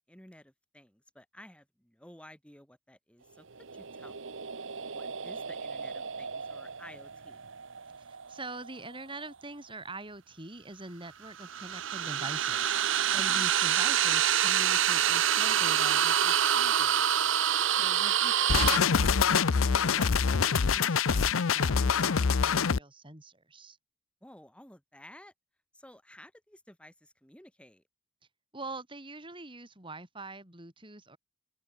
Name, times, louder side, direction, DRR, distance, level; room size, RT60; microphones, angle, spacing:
voice 1, 0.1-4.3 4.6-4.7 4.9-7.4 13.1-13.5 17.6-17.9 24.2-25.3 25.7-27.8, left 1 dB, 5° left, 7.5 m, -53 dB
sound 1, 3.6-8.8 11.3-18.8, right 9 dB, 65° right, 1.1 m, -28 dB
voice 2, 8.0-12.7 13.1-17.0 17.8-19.4 19.6-23.8 28.5-31.2, right 2 dB, 25° right, 7.0 m, -44 dB
sound 2, 18.5-22.8, left 6 dB, 75° left, 0.7 m, -25 dB
open air
head